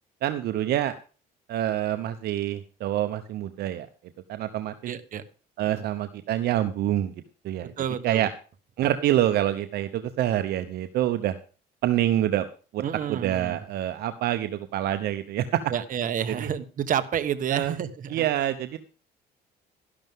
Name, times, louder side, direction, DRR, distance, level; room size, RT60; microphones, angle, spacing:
voice 1, 0.2-0.9 1.5-3.9 4.3-4.7 5.6-7.1 7.4-7.7 8.0-8.3 8.8-11.4 11.8-12.4 12.7-12.8 13.1-15.6 17.5-17.7 18.1-18.8, right 12 dB, 70° right, 10 dB, 0.9 m, -26 dB
voice 2, 4.9-5.2 5.6-5.9 7.8-8.3 12.8-13.6 15.7-18.2, right 9 dB, 50° right, 11 dB, 1.3 m, -29 dB
12.5 x 11.5 x 3.6 m, 0.37 s
cardioid pair, 110°, 17 cm